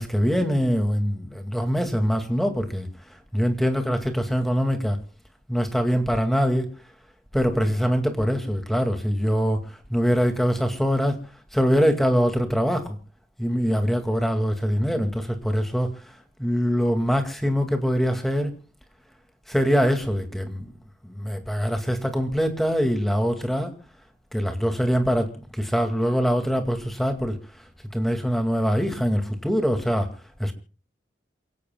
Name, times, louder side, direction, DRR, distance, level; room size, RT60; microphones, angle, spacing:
voice 1, 0.0-2.9 3.3-5.0 5.5-6.7 7.3-9.6 9.9-11.2 11.5-13.0 13.4-15.9 16.4-18.5 19.5-20.7 21.0-23.7 24.3-27.4 27.9-30.1 30.4-30.5, equal, ahead, 2.2 m, -23 dB
28.5 x 17.0 x 2.3 m
head